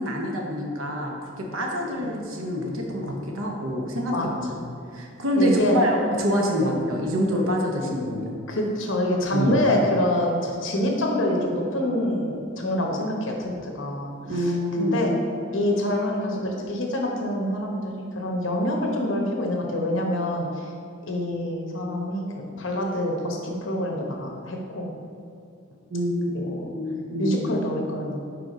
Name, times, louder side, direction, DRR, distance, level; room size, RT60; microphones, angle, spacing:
voice 1, 0.0-4.6 4.9-8.3 9.3-9.6 14.3-15.0 25.9-27.5, equal, 90° right, 0 dB, 1.0 m, -26 dB
voice 2, 5.4-5.8 6.6-6.7 8.5-14.1 14.8-15.1 15.5-20.6 21.1-24.9 26.3-26.5 27.2-28.2, left 1 dB, 65° left, 0 dB, 1.0 m, -26 dB
4.8 x 4.5 x 5.0 m, 2.4 s
head